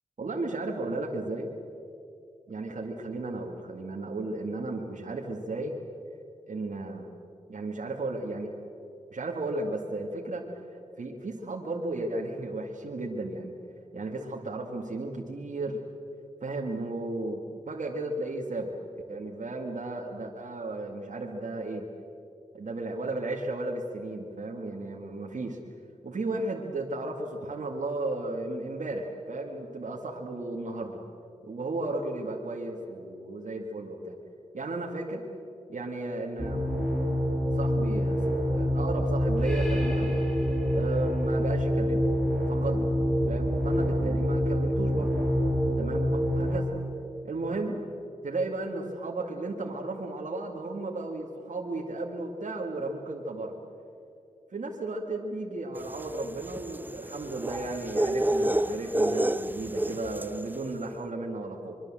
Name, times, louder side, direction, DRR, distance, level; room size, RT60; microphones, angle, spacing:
voice 1, 0.2-1.5 2.5-5.7 6.5-7.1 7.5-8.5 9.1-10.4 11.0-13.6 13.9-15.8 16.4-18.7 19.1-21.9 22.5-25.6 26.0-31.0 31.4-34.2 34.5-35.2 35.7-36.6 37.5-40.1 40.7-42.0 42.4-42.9 43.3-45.1 45.8-46.7 47.2-47.8 48.2-53.6 54.5-61.8, right 2 dB, 75° right, 0 dB, 2.2 m, -34 dB
sound 1, 36.4-46.6, equal, 5° left, 6.6 m, -26 dB
sound 2, 55.9-60.4, right 1 dB, 15° right, 0.8 m, -29 dB
24.5 x 23.5 x 7.6 m, 2.6 s
cardioid pair, 50°, 13 cm